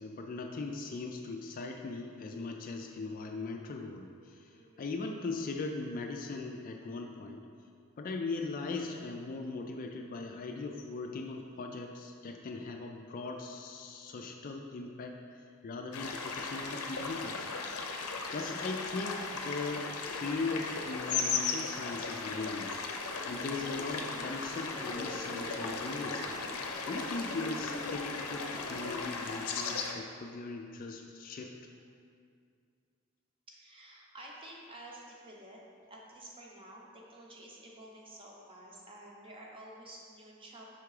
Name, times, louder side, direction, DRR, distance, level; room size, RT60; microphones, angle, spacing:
voice 1, 0.0-7.5 8.0-17.5 18.3-22.7 23.3-26.4 26.9-31.5, left 3 dB, 40° left, 3 dB, 0.3 m, -39 dB
voice 2, 4.5-5.0 33.5-35.6 35.9-40.6, right 1 dB, 25° right, -3 dB, 0.8 m, -51 dB
sound 1, 15.9-29.9, left 4 dB, 85° left, 0.6 m, -37 dB
sound 2, 22.3-29.0, left 1 dB, 20° left, 0.9 m, -46 dB
5.7 x 3.5 x 4.8 m, 2.2 s
head